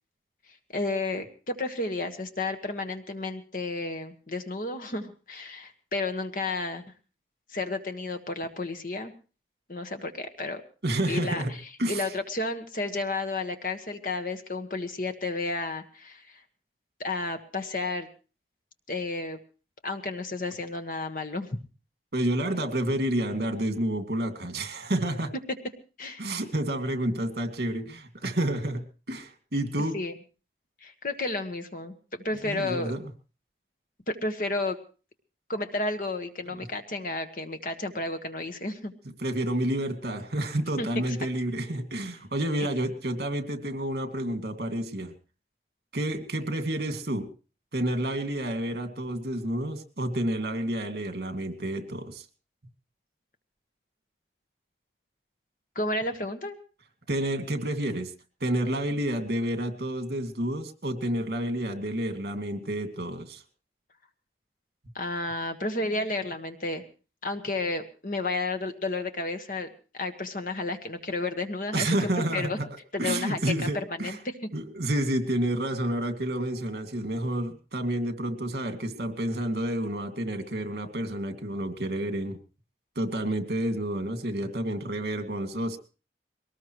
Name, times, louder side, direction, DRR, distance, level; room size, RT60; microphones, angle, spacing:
voice 1, 0.7-6.8 7.5-9.1 9.7-10.6 11.1-11.4 11.9-16.2 17.0-18.1 18.9-19.4 19.8-21.5 26.0-26.3 29.9-30.1 30.8-31.9 32.2-32.9 34.1-34.8 35.5-38.9 40.8-41.0 55.7-56.6 64.9-66.8 67.2-69.7 69.9-71.9 72.3-72.6 72.9-73.4 73.7-74.3, left 2 dB, 50° left, 6 dB, 1.5 m, -32 dB
voice 2, 10.8-12.0 22.1-25.3 26.2-29.9 32.4-33.1 36.5-36.7 39.2-45.1 45.9-47.3 47.7-52.2 57.1-58.1 58.4-63.4 71.7-72.7 73.0-74.2 74.5-82.4 83.0-85.8, right 1 dB, 60° right, 6 dB, 2.3 m, -29 dB
22.0 x 19.0 x 3.2 m, 0.36 s
head